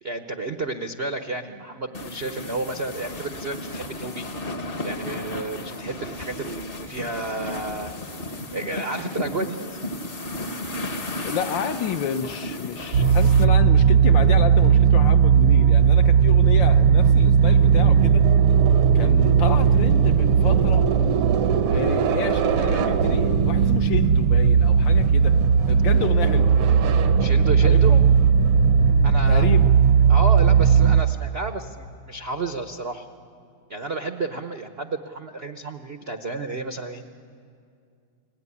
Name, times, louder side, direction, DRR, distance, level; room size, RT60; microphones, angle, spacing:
voice 1, 0.0-4.3 4.8-7.9 8.5-9.8 27.2-28.0 29.0-29.6 30.1-33.1 33.7-37.1, right 3 dB, 55° right, 0.6 m, -31 dB
sound 1, 1.9-13.4, left 1 dB, 35° left, 1.0 m, -34 dB
voice 2, 11.2-18.2 18.9-20.9 21.7-25.4 25.7-26.6 27.6-28.0 29.3-29.7, left 8 dB, 65° left, 1.4 m, -30 dB
sound 2, 12.9-31.0, right 7 dB, 85° right, 1.9 m, -17 dB
30.0 x 19.5 x 9.8 m
omnidirectional pair, 2.4 m